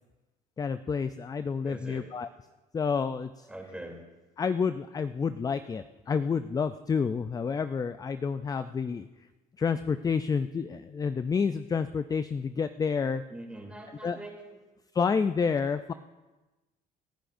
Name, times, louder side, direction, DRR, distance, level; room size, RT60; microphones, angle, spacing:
voice 1, 0.6-2.3 2.7-3.5 4.4-9.1 9.6-13.2 14.0-14.2 14.9-15.9, left 5 dB, 20° left, 11 dB, 0.4 m, -29 dB
voice 2, 1.6-2.1 3.5-4.0 13.3-14.4, right 1 dB, 5° right, 0 dB, 3.0 m, -42 dB
29.0 x 10.0 x 2.6 m, 1.1 s
cardioid pair, 110°, 17 cm